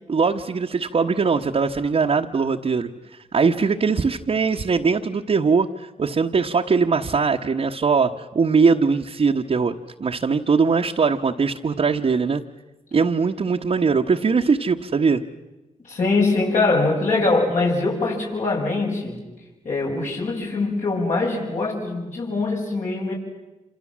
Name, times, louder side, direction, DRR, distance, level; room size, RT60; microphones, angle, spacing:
voice 1, 0.1-2.9 3.3-9.7 10.0-12.4 12.9-15.2, right 5 dB, 50° right, 0 dB, 1.2 m, -21 dB
voice 2, 15.8-19.2 19.6-23.1, left 3 dB, 65° left, -4 dB, 7.8 m, -22 dB
28.0 x 27.0 x 7.5 m, 1.1 s
cardioid pair, 65°, 14 cm